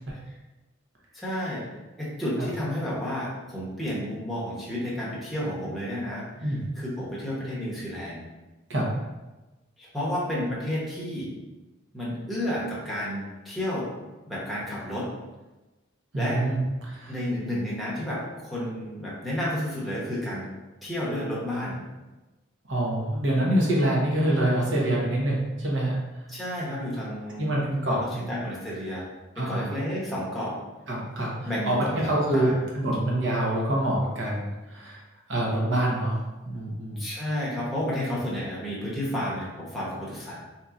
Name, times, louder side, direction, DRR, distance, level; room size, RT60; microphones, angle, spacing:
voice 1, 1.1-1.7 2.0-6.2 6.8-8.3 9.8-11.3 11.9-13.9 14.3-15.1 16.2-16.4 17.1-20.5 20.8-21.8 26.3-27.5 27.9-29.0 29.4-30.6 31.4-32.5 37.0-40.4, left 1 dB, ahead, -7 dB, 0.8 m, -31 dB
voice 2, 16.1-17.1 22.7-26.0 27.4-28.3 29.4-29.7 30.9-31.8 32.0-35.0 35.3-37.1, right 1 dB, 65° right, -4 dB, 0.9 m, -26 dB
3.9 x 2.8 x 2.4 m, 1.1 s
head